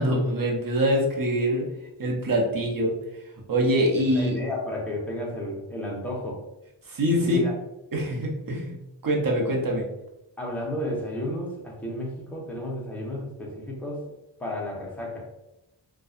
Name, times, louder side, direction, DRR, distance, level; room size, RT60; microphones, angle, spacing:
voice 1, 0.0-1.7 2.0-2.9 3.5-4.4 6.9-7.4 7.9-8.8 9.0-9.9, equal, 45° right, -1 dB, 0.7 m, -24 dB
voice 2, 4.1-6.4 7.2-7.5 10.4-14.0 14.4-15.3, left 1 dB, 5° left, -3 dB, 0.7 m, -32 dB
2.7 x 2.2 x 2.4 m, 0.90 s
wide cardioid pair, 60°, 49 cm